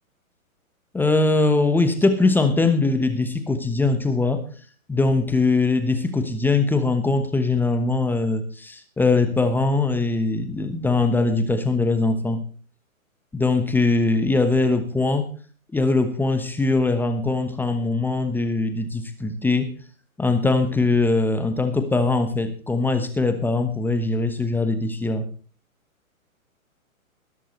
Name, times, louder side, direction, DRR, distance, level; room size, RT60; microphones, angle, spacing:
voice 1, 0.9-4.4 4.9-12.4 13.3-15.3 15.7-19.7 20.2-25.3, left 3 dB, 5° left, 8 dB, 1.0 m, -21 dB
20.0 x 11.0 x 3.2 m, 0.40 s
hypercardioid pair, 130°, 42 cm